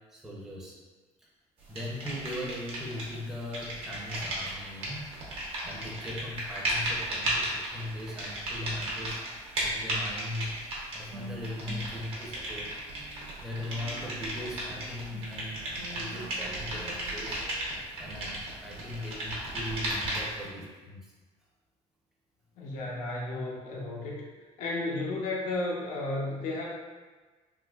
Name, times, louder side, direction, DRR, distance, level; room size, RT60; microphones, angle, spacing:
voice 1, 0.1-0.8 1.2-1.3 1.7-9.2 9.6-10.5 10.9-12.7 13.4-17.4 18.0-21.1, left 1 dB, 5° right, -5 dB, 0.6 m, -39 dB
sound 1, 1.8-3.2 3.4-20.4, right 1 dB, 50° right, 0.9 m, -35 dB
sound 2, 11.1-13.3 13.7-17.6, right 3 dB, 85° right, 0.4 m, -47 dB
voice 2, 22.6-24.2 24.6-26.7, left 2 dB, 80° left, -3 dB, 0.6 m, -33 dB
3.6 x 2.6 x 2.4 m, 1.3 s
cardioid pair, 160°, 12 cm